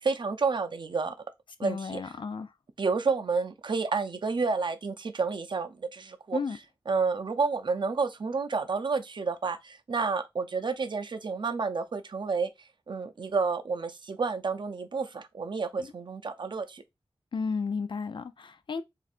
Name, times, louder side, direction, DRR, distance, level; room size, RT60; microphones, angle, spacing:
voice 1, 0.0-1.1 1.6-2.0 2.8-6.4 6.9-12.5 12.9-16.8, right 4 dB, 55° right, 0.5 m, -30 dB
voice 2, 1.6-2.5 6.3-6.6 15.8-15.9 17.3-18.8, left 5 dB, 60° left, 0.4 m, -33 dB
2.5 x 2.5 x 4.1 m
wide cardioid pair, 95°, 9 cm